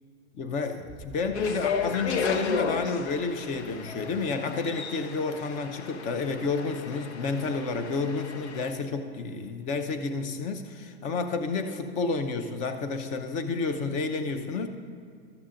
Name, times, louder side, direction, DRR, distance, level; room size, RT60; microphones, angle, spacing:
voice 1, 0.3-14.7, left 4 dB, 25° left, 8 dB, 0.6 m, -30 dB
sound 1, 0.7-5.5, right 2 dB, 5° right, 0.9 m, -50 dB
sound 2, 1.3-8.7, left 5 dB, 85° left, 0.9 m, -34 dB
13.5 x 7.0 x 3.8 m, 2.3 s
hypercardioid pair, 140°, 33 cm